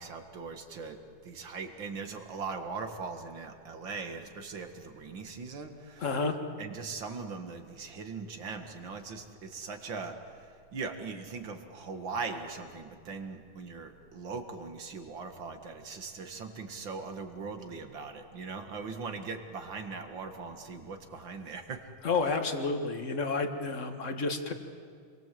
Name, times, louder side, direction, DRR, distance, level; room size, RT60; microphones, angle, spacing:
voice 1, 0.0-6.1 6.6-21.8, right 4 dB, 65° right, 6 dB, 2.5 m, -40 dB
voice 2, 6.0-6.4 22.0-24.5, left 3 dB, 40° left, 6 dB, 1.9 m, -30 dB
28.5 x 22.5 x 7.8 m, 2.1 s
omnidirectional pair, 2.3 m